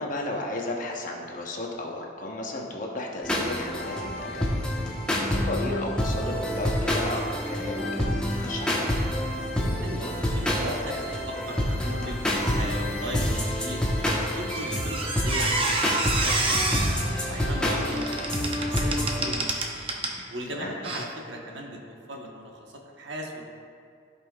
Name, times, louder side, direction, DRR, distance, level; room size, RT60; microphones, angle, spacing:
voice 1, 0.0-4.6 5.2-8.9 20.5-20.7, left 2 dB, 45° left, -1 dB, 0.9 m, -34 dB
sound 1, 3.2-19.3, left 1 dB, 5° left, 1.0 m, -28 dB
voice 2, 9.3-12.2 12.6-13.8 14.4-16.9 17.3-19.6 20.3-22.6 23.0-23.4, equal, 65° right, 0 dB, 1.1 m, -37 dB
Squeak, 14.1-20.2 20.8-21.0, right 2 dB, 30° right, 0.7 m, -29 dB
15.0 x 5.4 x 2.3 m, 2.3 s
head